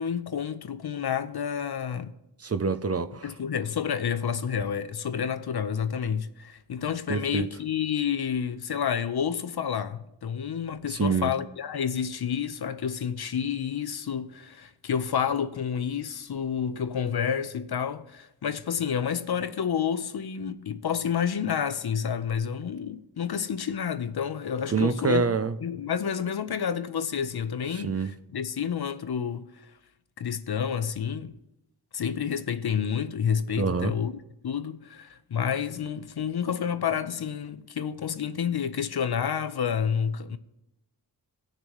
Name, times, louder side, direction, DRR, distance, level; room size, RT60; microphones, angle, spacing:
voice 1, 0.0-2.1 3.2-29.5 30.2-31.3 31.9-34.1 34.4-40.4, left 7 dB, 65° left, 0.7 m, -29 dB
voice 2, 2.4-3.3 7.1-7.5 10.9-11.3 24.7-25.5 27.7-28.1 33.6-33.9, right 5 dB, 35° right, 0.5 m, -26 dB
18.5 x 6.7 x 3.1 m
wide cardioid pair, 90°, 42 cm